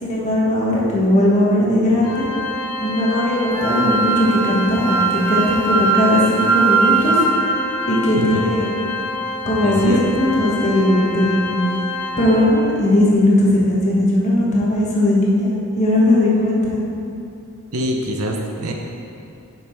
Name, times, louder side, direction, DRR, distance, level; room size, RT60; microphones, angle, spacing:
voice 1, 0.0-2.3 2.8-7.1 7.9-8.7 9.4-11.5 12.2-16.8, left 1 dB, 30° left, -5 dB, 1.4 m, -18 dB
Organ, 2.0-12.8, left 2 dB, 85° left, 1.0 m, -28 dB
Wind instrument woodwind instrument, 3.5-7.3, right 5 dB, 5° left, 0.9 m, -20 dB
voice 2, 9.6-10.0 17.7-18.7, right 1 dB, 70° right, 1 dB, 0.8 m, -24 dB
6.8 x 5.8 x 4.5 m, 2.6 s
head